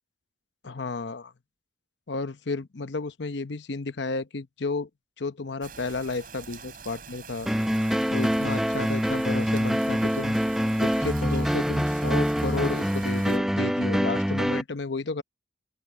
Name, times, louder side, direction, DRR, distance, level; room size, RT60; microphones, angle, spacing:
voice 1, 0.6-1.3 2.1-4.9 5.2-7.5 8.1-10.4 10.8-15.2, left 3 dB, 65° left, 0.8 m, -32 dB
sound 1, 5.6-13.4, right 5 dB, 45° right, 6.8 m, -45 dB
sound 2, 7.5-14.6, equal, ahead, 0.7 m, -25 dB
open air
head